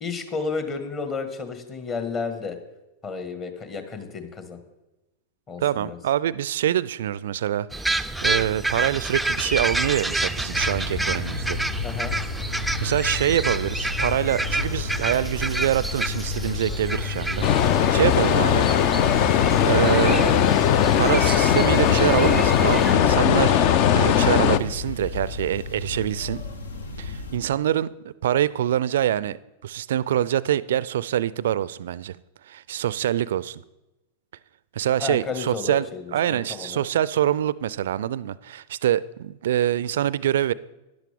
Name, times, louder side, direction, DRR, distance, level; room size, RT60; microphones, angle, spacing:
voice 1, 0.0-2.6 3.0-4.6 5.5-6.0 11.8-12.2 35.0-36.9, left 4 dB, 30° left, 1.7 m, -32 dB
voice 2, 5.6-7.9 8.2-11.6 12.8-17.5 17.9-18.7 19.6-20.5 21.0-23.7 23.9-26.4 27.0-29.4 29.6-32.2 32.5-33.6 34.7-35.9 36.1-40.5, right 11 dB, 65° right, 0.4 m, -25 dB
sound 1, 7.7-22.9, right 2 dB, 5° right, 0.4 m, -29 dB
sound 2, 10.5-27.4, left 4 dB, 75° left, 1.1 m, -33 dB
sound 3, 17.4-24.6, left 9 dB, 45° left, 0.6 m, -19 dB
13.0 x 10.5 x 3.6 m
figure-of-eight pair, 95°, 0 cm